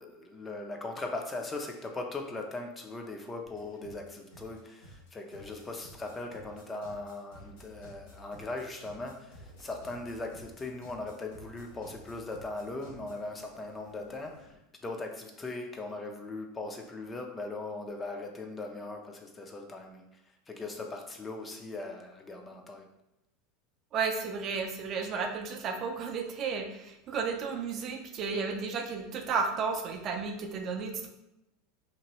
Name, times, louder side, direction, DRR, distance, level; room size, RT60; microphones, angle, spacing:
voice 1, 0.0-14.6 14.8-20.2 20.5-22.9, left 2 dB, 20° left, 3 dB, 0.4 m, -39 dB
sound 1, 3.5-14.6, equal, 85° left, 1.5 m, -53 dB
voice 2, 23.9-31.1, right 5 dB, 40° right, 4 dB, 0.4 m, -33 dB
2.9 x 2.6 x 2.9 m, 0.88 s
supercardioid pair, 125°, 0 cm